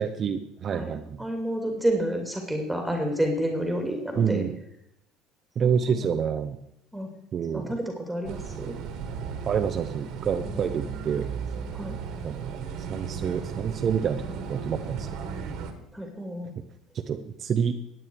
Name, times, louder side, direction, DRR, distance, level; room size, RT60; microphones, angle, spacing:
voice 1, 0.0-1.2 4.2-4.5 5.6-6.6 7.3-7.7 9.5-11.3 12.2-12.6 12.9-14.2 14.5-15.1 17.1-17.8, right 7 dB, 45° right, 7 dB, 0.8 m, -27 dB
voice 2, 0.7-4.5 5.6-6.1 6.9-7.1 7.5-8.7 10.4-10.7 11.7-11.9 15.9-16.5, right 1 dB, 5° right, 3 dB, 2.6 m, -30 dB
sound 1, 8.2-15.7, right 6 dB, 65° right, 1.8 m, -35 dB
15.5 x 9.2 x 4.7 m, 0.80 s
supercardioid pair, 85°, 0 cm